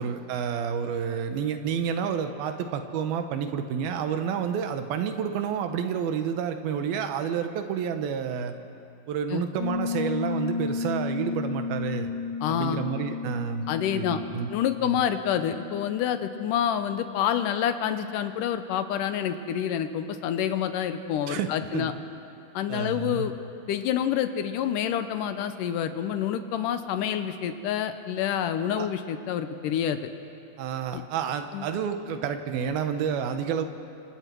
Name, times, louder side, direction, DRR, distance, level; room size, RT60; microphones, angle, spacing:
voice 1, 0.0-8.5 9.1-12.1 12.5-13.6 13.9-14.5 14.8-15.0 21.3-21.9 22.7-23.3 28.8-28.9 30.6-33.7, right 7 dB, 80° right, 7 dB, 3.0 m, -29 dB
Piano, 9.6-18.1, left 5 dB, 40° left, 4.5 m, -34 dB
voice 2, 12.4-12.8 13.7-14.2 14.5-21.9 22.5-23.3 23.7-30.1 30.9-31.0 31.5-31.7, left 9 dB, 75° left, 9 dB, 2.2 m, -28 dB
26.5 x 25.5 x 4.6 m, 2.6 s
omnidirectional pair, 4.3 m